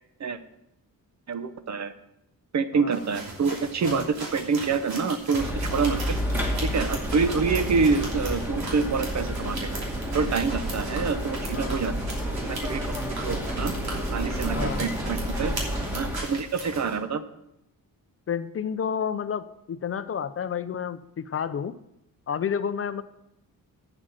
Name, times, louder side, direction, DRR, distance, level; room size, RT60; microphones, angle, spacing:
voice 1, 1.3-1.9 2.5-6.2 6.6-9.8 10.1-11.9 12.5-13.7 14.1-15.5 15.9-17.2, right 5 dB, 50° right, 11 dB, 0.8 m, -27 dB
sound 1, 2.9-17.0, right 2 dB, 90° right, 3.0 m, -38 dB
sound 2, 5.4-16.2, equal, 5° right, 1.6 m, -30 dB
voice 2, 14.5-14.8 18.3-21.8 22.3-23.0, left 7 dB, 40° left, 13 dB, 0.5 m, -30 dB
8.7 x 7.4 x 7.4 m, 0.84 s
wide cardioid pair, 125°, 35 cm